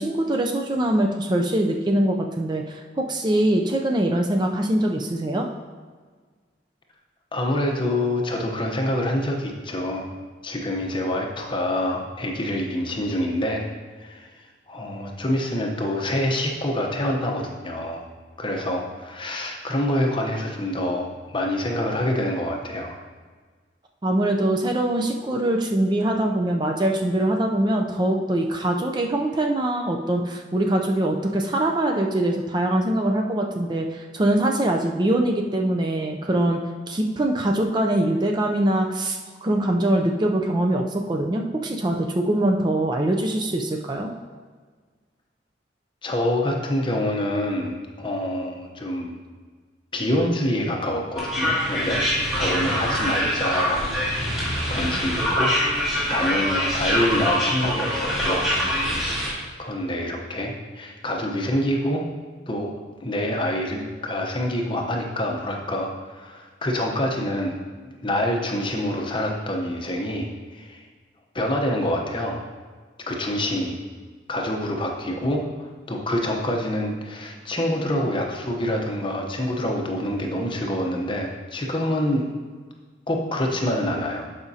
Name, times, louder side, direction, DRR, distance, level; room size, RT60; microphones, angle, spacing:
voice 1, 0.0-5.5 24.0-36.6 36.9-44.1, right 1 dB, 25° right, 2 dB, 0.4 m, -23 dB
voice 2, 7.3-10.1 10.4-13.7 14.0-14.3 14.7-18.1 18.4-22.9 46.0-49.1 49.9-52.0 52.3-54.1 54.7-58.5 59.6-62.0 62.5-62.7 63.0-70.8 71.3-72.4 73.1-73.8 74.3-75.4 75.9-82.3 83.1-84.3, left 1 dB, 25° left, 1 dB, 0.8 m, -26 dB
sound 1, 51.2-59.3, equal, ahead, 2.2 m, -24 dB
12.0 x 5.0 x 2.8 m, 1.5 s
head